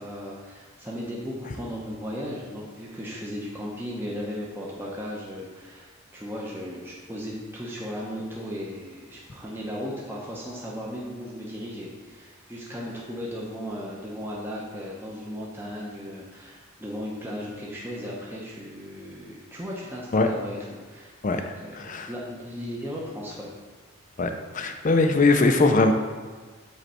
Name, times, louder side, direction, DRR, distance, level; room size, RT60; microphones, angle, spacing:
voice 1, 0.0-20.6 20.9-23.5, equal, 10° right, -4 dB, 0.7 m, -36 dB
voice 2, 21.7-22.1 24.2-25.9, left 3 dB, 35° left, 6 dB, 0.4 m, -21 dB
7.9 x 3.2 x 4.3 m, 1.4 s
head